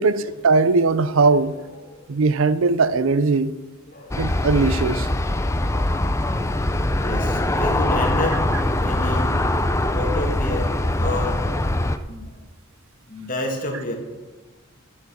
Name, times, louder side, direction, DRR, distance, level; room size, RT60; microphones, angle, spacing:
voice 1, 0.0-1.5 2.1-3.5 4.2-5.1, right 4 dB, 65° right, 0.5 m, -19 dB
voice 2, 3.9-4.2 5.3-5.6 6.7-11.4 11.8-12.3 13.1-14.0, left 1 dB, 40° left, 2.2 m, -30 dB
Aircraft, 4.1-12.0, left 1 dB, 15° left, 0.5 m, -22 dB
12.5 x 7.4 x 6.5 m
head